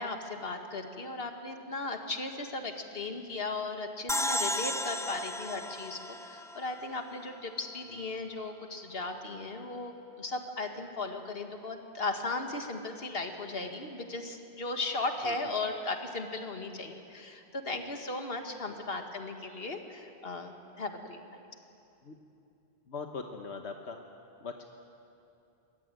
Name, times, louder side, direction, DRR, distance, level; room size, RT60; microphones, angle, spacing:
voice 1, 0.0-21.4, left 3 dB, 60° left, 5 dB, 2.1 m, -37 dB
sound 1, 4.1-7.4, left 1 dB, 5° left, 0.7 m, -34 dB
voice 2, 22.9-24.0 24.4-24.6, left 4 dB, 85° left, 4 dB, 1.5 m, -40 dB
23.0 x 21.0 x 9.2 m, 2.7 s
omnidirectional pair, 1.1 m